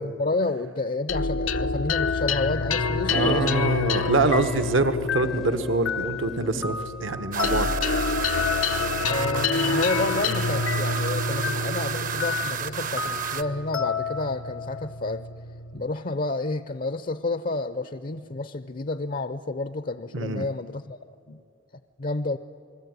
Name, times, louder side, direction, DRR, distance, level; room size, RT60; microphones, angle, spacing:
voice 1, 0.0-3.6 9.1-15.3 15.7-21.0 21.3-21.4 22.0-22.4, left 2 dB, 40° left, 12 dB, 0.6 m, -30 dB
sound 1, 1.1-15.8, left 4 dB, 90° left, 0.9 m, -27 dB
sound 2, 3.1-6.9, equal, ahead, 0.6 m, -37 dB
voice 2, 3.1-7.7 20.1-20.5, right 3 dB, 70° right, 11 dB, 1.1 m, -25 dB
sound 3, 7.3-13.4, right 7 dB, 40° right, 0.8 m, -32 dB
28.0 x 20.5 x 9.5 m, 2.4 s
head